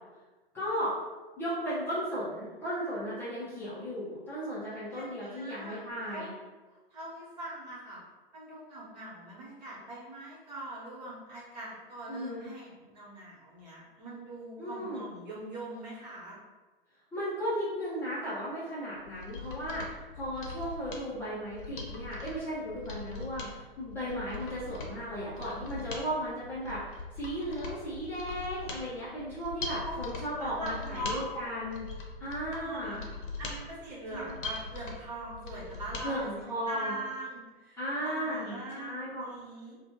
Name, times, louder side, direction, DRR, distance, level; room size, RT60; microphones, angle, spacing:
voice 1, 0.5-0.9 1.4-6.3 12.1-12.5 14.6-15.1 17.1-31.9 32.2-33.0 34.1-34.3 36.0-37.0 37.8-39.3, equal, 10° left, -12 dB, 0.4 m, -35 dB
voice 2, 4.9-6.3 6.9-8.0 8.3-16.4 29.8-30.0 30.4-31.2 32.6-33.1 33.4-38.9 39.2-39.8, right 1 dB, 45° right, -6 dB, 1.1 m, -42 dB
Mechanisms, 19.0-36.1 36.4-36.5, left 3 dB, 60° left, 0.6 m, -42 dB
2.5 x 2.2 x 2.8 m, 1.2 s
figure-of-eight pair, 105°, 29 cm